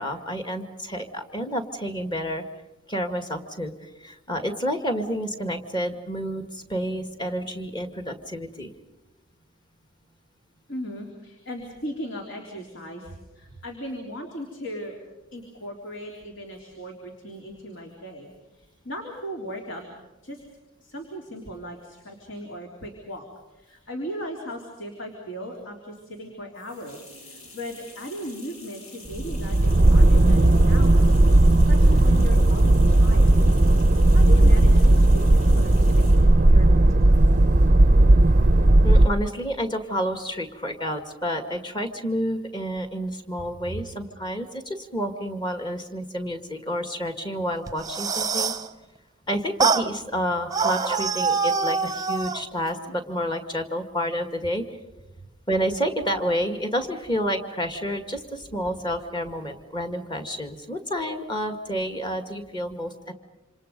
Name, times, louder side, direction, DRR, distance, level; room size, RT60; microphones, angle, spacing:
voice 1, 0.0-2.4 2.9-8.7 38.8-48.5 49.3-54.7 55.5-63.1, equal, 20° left, 7 dB, 2.0 m, -29 dB
voice 2, 10.7-15.0 15.3-19.8 20.2-20.4 20.8-31.4 31.7-33.4 34.1-37.3 43.7-43.8, equal, 55° left, 1 dB, 3.6 m, -37 dB
sound 1, 26.5-36.3, left 2 dB, 75° left, 6.4 m, -47 dB
sound 2, 29.1-39.1, right 1 dB, 35° right, 0.7 m, -16 dB
sound 3, 47.7-48.7 49.6-49.9 50.5-52.4, right 5 dB, 15° right, 1.0 m, -24 dB
28.0 x 27.0 x 5.4 m, 1.1 s
head